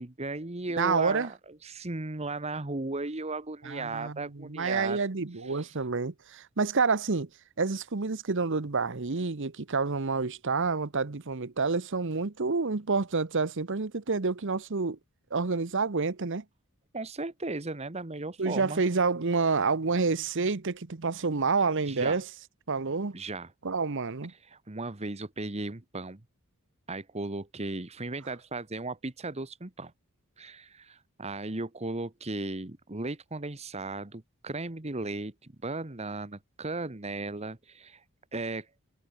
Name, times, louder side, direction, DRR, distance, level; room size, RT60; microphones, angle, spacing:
voice 1, 0.0-5.0 5.5-5.7 16.9-18.8 21.9-22.2 23.1-23.5 24.4-26.2 26.9-29.9 30.4-38.0 38.3-38.7, right 2 dB, 30° right, 1.3 m, -36 dB
voice 2, 0.8-1.3 3.6-7.3 7.6-15.0 15.3-16.4 18.4-22.2 22.7-23.2 23.6-24.3, right 4 dB, 55° right, 1.0 m, -28 dB
head